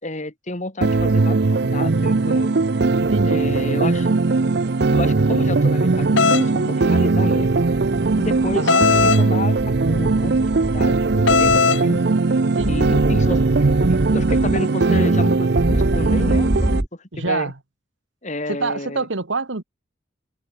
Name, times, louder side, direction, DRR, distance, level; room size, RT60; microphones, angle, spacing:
voice 1, 0.0-2.5 3.2-4.1 4.9-7.6 8.1-10.3 10.7-12.0 12.7-13.4 13.8-17.5 18.2-19.1, left 1 dB, 40° left, 3.1 m, -30 dB
sound 1, 0.8-16.8, right 3 dB, 60° right, 0.6 m, -19 dB
voice 2, 3.0-3.4 8.6-8.9 12.4-12.9 17.1-17.5 18.5-19.6, right 3 dB, 80° right, 1.5 m, -25 dB
sound 2, 6.2-6.5 8.7-9.2 11.3-11.8, left 5 dB, 80° left, 1.1 m, -17 dB
sound 3, 7.7-8.6 9.6-11.6 12.6-14.6 15.6-16.9, right 1 dB, 20° right, 0.8 m, -26 dB
head